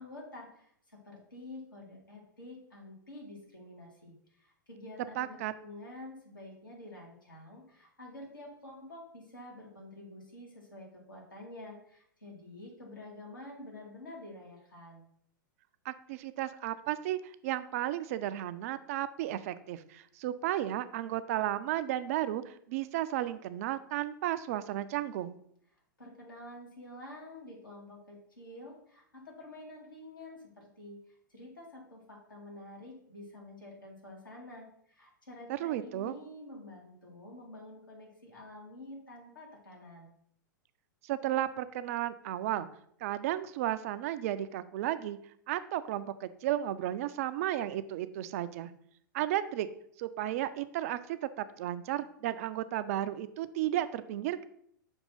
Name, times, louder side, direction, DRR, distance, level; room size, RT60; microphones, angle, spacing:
voice 1, 0.0-15.0 25.7-40.1, left 1 dB, 80° left, -2 dB, 2.2 m, -49 dB
voice 2, 5.2-5.5 15.9-25.4 35.5-36.2 41.0-42.7 43.0-45.2 45.5-48.7 49.1-49.7 50.0-54.4, right 13 dB, 45° right, 12 dB, 0.4 m, -34 dB
6.2 x 2.9 x 5.4 m, 0.68 s
figure-of-eight pair, 100°, 11 cm